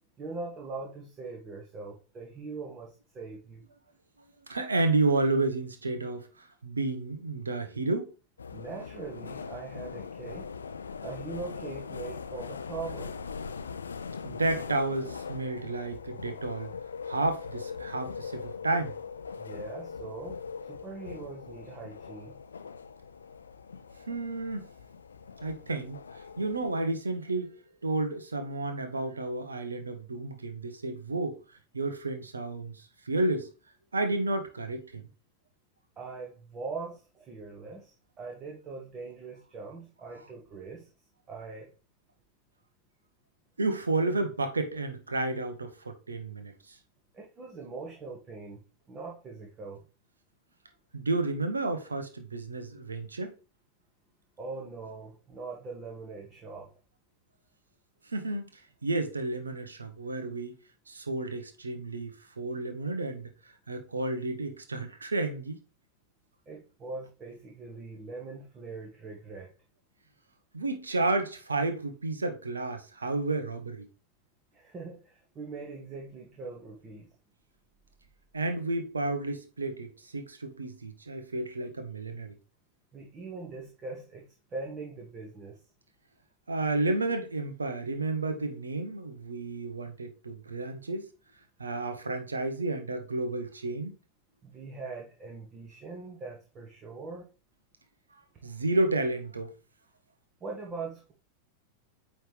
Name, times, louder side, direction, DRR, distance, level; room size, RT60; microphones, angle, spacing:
voice 1, 0.2-3.6 8.5-10.5 11.0-13.2 19.4-22.4 36.0-40.9 41.3-41.7 47.1-49.8 54.4-56.7 66.5-69.5 74.5-77.1 82.9-85.6 94.4-97.3 100.4-101.1, right 4 dB, 25° right, 1.3 m, -41 dB
voice 2, 4.5-8.1 14.2-16.7 17.1-18.9 24.1-24.7 25.4-27.6 27.8-31.4 31.7-33.5 33.9-35.0 43.6-46.8 50.9-53.3 58.1-58.5 58.8-60.6 60.9-63.3 63.7-65.6 70.5-73.9 78.3-82.3 86.5-91.1 91.6-94.0 98.4-99.5, right 2 dB, 75° right, 1.0 m, -31 dB
sound 1, 8.4-26.8, left 5 dB, 70° left, 0.4 m, -41 dB
8.9 x 3.3 x 3.3 m
figure-of-eight pair, 90°, 0 cm